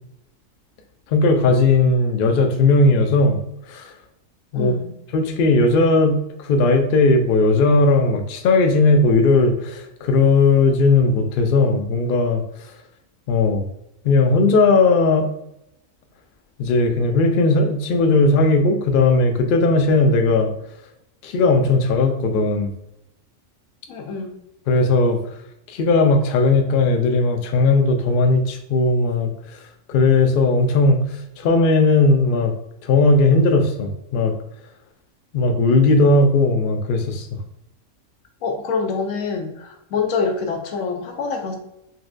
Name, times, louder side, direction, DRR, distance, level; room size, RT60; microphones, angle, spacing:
voice 1, 1.1-3.4 3.7-3.9 4.5-4.7 5.1-12.4 13.3-13.6 14.0-15.3 16.6-20.5 21.2-22.7 24.7-25.2 25.7-29.6 29.9-32.5 32.8-34.3 35.3-37.3, left 3 dB, 70° left, 5 dB, 0.5 m, -17 dB
voice 2, 4.5-4.9 23.9-24.3 38.4-41.6, left 5 dB, 85° left, 3 dB, 1.0 m, -25 dB
4.2 x 2.3 x 2.5 m, 0.80 s
omnidirectional pair, 1.4 m